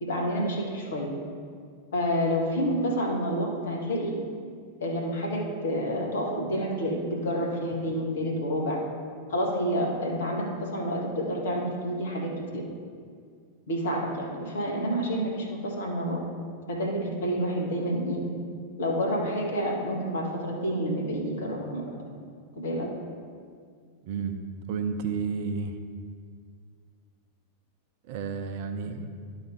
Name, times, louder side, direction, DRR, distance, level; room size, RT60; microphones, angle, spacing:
voice 1, 0.0-1.1 1.9-4.2 4.8-8.8 9.3-12.6 13.7-16.2 16.7-18.2 18.8-22.1 22.5-22.9, equal, 65° left, 0 dB, 1.6 m, -29 dB
voice 2, 24.0-24.4 24.7-25.8 28.1-29.1, right 5 dB, 50° right, 7 dB, 0.6 m, -31 dB
11.5 x 4.0 x 4.9 m, 2.1 s
figure-of-eight pair, 90°, 0 cm